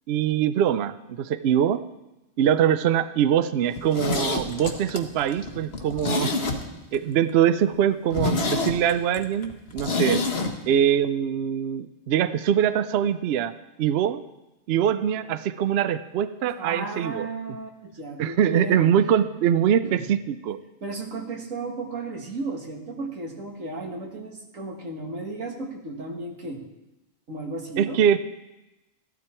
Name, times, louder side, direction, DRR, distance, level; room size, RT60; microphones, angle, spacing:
voice 1, 0.1-1.8 2.4-6.3 6.9-10.3 10.7-14.2 14.7-17.3 18.2-20.6 27.8-28.2, right 9 dB, 65° right, 13 dB, 0.7 m, -23 dB
Zipper (clothing), 3.7-7.0 7.3-7.4 7.7-7.8 8.1-10.5 10.8-10.9, left 3 dB, 55° left, 1.4 m, -27 dB
voice 2, 16.6-18.9 19.8-20.0 20.8-26.6 27.3-28.0, right 3 dB, 90° right, 2 dB, 2.1 m, -34 dB
14.5 x 12.0 x 4.4 m, 1.0 s
omnidirectional pair, 1.3 m